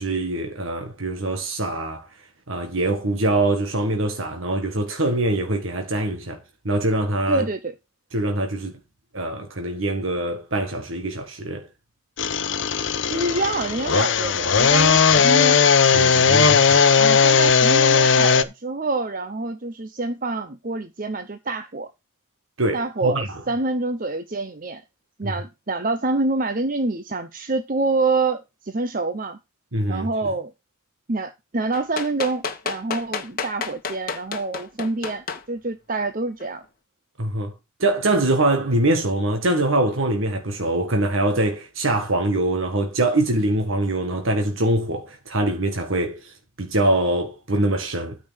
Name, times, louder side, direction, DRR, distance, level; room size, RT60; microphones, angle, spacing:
voice 1, 0.0-2.1 2.5-7.5 8.1-8.8 9.1-11.7 15.9-16.9 22.6-23.4 25.2-25.3 29.7-30.1 37.2-37.5 37.8-48.2, right 2 dB, 70° right, 1.6 m, -23 dB
voice 2, 7.3-7.7 13.0-15.6 17.0-21.9 22.7-24.8 25.2-29.4 29.9-30.5 31.1-36.6, right 3 dB, 40° right, 0.8 m, -26 dB
sound 1, 12.2-18.4, left 6 dB, 60° left, 0.8 m, -17 dB
sound 2, 31.7-35.4 36.4-36.5, left 5 dB, 45° left, 1.4 m, -30 dB
9.3 x 4.8 x 6.3 m
head